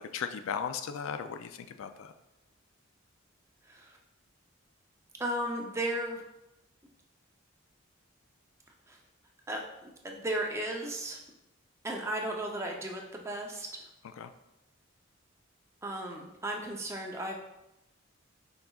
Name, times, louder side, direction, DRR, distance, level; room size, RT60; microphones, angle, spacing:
voice 1, 0.1-2.1 14.2-14.3, left 7 dB, 75° left, 9 dB, 0.3 m, -36 dB
voice 2, 3.7-4.0 5.2-6.2 8.9-9.0 9.5-11.2 11.8-13.9 15.8-17.4, right 1 dB, 15° right, 0 dB, 0.5 m, -35 dB
5.8 x 3.9 x 2.3 m, 0.90 s
head